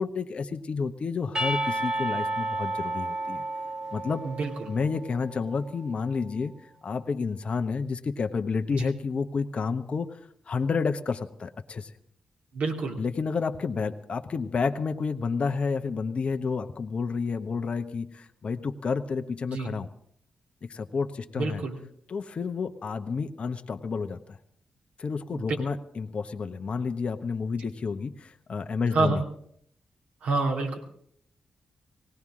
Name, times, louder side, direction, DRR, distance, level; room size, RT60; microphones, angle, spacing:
voice 1, 0.0-3.4 3.9-4.2 4.7-6.5 6.8-10.2 10.5-11.9 13.0-19.9 20.6-21.6 22.1-24.4 25.0-29.2, left 5 dB, 55° left, 6 dB, 0.9 m, -30 dB
Percussion / Church bell, 1.3-5.7, right 2 dB, 40° right, 2.0 m, -32 dB
voice 2, 4.2-4.7 8.8-8.9 12.5-13.0 19.5-19.7 21.4-21.8 25.3-25.4 27.6-27.7 28.9-29.2 30.2-30.8, right 3 dB, 80° right, 0 dB, 2.7 m, -28 dB
19.0 x 17.5 x 3.7 m, 0.66 s
supercardioid pair, 50°, 2 cm